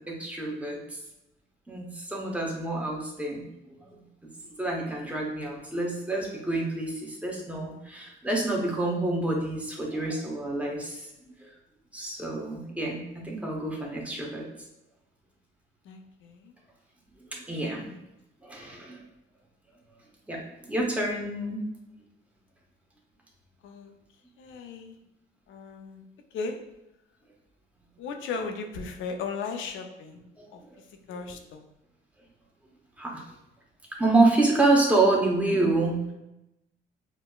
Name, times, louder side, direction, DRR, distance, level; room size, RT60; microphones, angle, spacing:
voice 1, 0.1-0.8 1.7-3.5 3.9-4.0 4.5-11.1 11.9-14.5 17.3-17.9 18.4-19.0 20.3-20.4 20.7-21.6 30.4-30.5 33.0-33.2 34.0-36.1, right 2 dB, 5° right, -2 dB, 0.8 m, -27 dB
voice 2, 15.9-16.5 17.9-18.0 23.6-23.9 24.4-24.9 25.5-26.0 26.3-26.6 28.0-30.2 30.5-30.6 31.1-31.6, left 4 dB, 80° left, 5 dB, 0.5 m, -36 dB
5.1 x 2.0 x 2.3 m, 0.89 s
cardioid pair, 90°, 20 cm